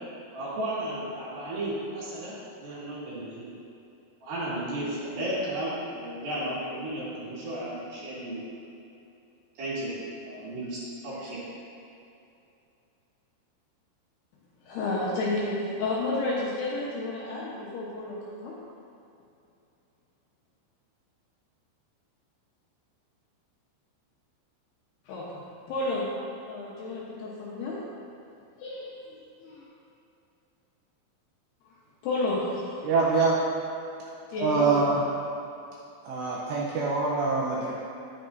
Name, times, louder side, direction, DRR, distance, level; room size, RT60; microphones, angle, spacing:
voice 1, 0.3-2.3 2.6-3.5 4.2-8.4 9.6-10.0 10.2-11.4, right 1 dB, 60° right, -9 dB, 3.2 m, -34 dB
voice 2, 14.7-18.5 25.1-25.4 25.7-26.1 26.5-27.8 28.6-29.0 29.4-29.6 32.0-32.8 34.3-34.9, left 2 dB, 70° left, -6 dB, 2.6 m, -31 dB
voice 3, 32.8-33.4 34.4-35.0 36.0-37.7, right 4 dB, 80° right, -4 dB, 2.6 m, -24 dB
10.5 x 9.7 x 2.6 m, 2.7 s
omnidirectional pair, 5.7 m